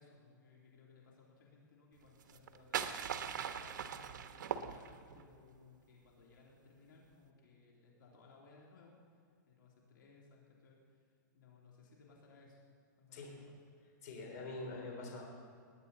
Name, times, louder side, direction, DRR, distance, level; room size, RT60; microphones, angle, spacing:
voice 1, 0.0-11.1 11.3-12.6 13.0-13.5, left 4 dB, 90° left, -3 dB, 3.2 m, -62 dB
sound 1, 2.2-5.2, right 8 dB, 75° right, 1.0 m, -40 dB
voice 2, 14.0-15.2, left 2 dB, 50° left, 0 dB, 3.5 m, -44 dB
20.0 x 10.5 x 4.2 m, 2.3 s
hypercardioid pair, 160°, 11 cm